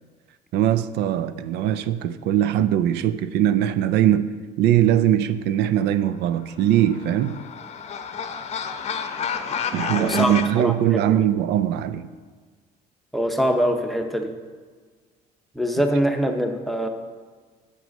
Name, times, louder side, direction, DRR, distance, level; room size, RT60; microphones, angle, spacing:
voice 1, 0.5-4.3 4.6-7.4 9.7-12.1, right 11 dB, 80° right, 13 dB, 0.4 m, -21 dB
sound 1, 6.6-10.5, left 6 dB, 40° left, 0.7 m, -30 dB
voice 2, 10.0-10.3 10.6-10.7 13.1-14.3 15.6-16.9, equal, ahead, 5 dB, 0.7 m, -23 dB
7.9 x 6.1 x 5.2 m, 1.5 s
cardioid pair, 110°, 17 cm